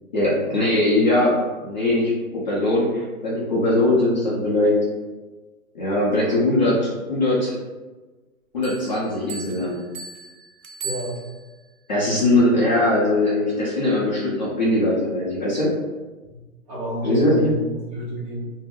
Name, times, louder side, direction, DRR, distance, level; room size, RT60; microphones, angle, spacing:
voice 1, 0.1-1.3 1.6-4.8 5.7-7.6 8.5-9.8 11.9-15.7 17.0-17.5, left 1 dB, 30° left, -7 dB, 0.5 m, -21 dB
sound 1, 8.6-11.7, right 5 dB, 65° right, 0.6 m, -38 dB
voice 2, 10.8-11.2 16.3-16.4 16.7-18.5, right 1 dB, 25° right, -8 dB, 0.8 m, -30 dB
2.4 x 2.1 x 3.4 m, 1.2 s
hypercardioid pair, 145°, 45 cm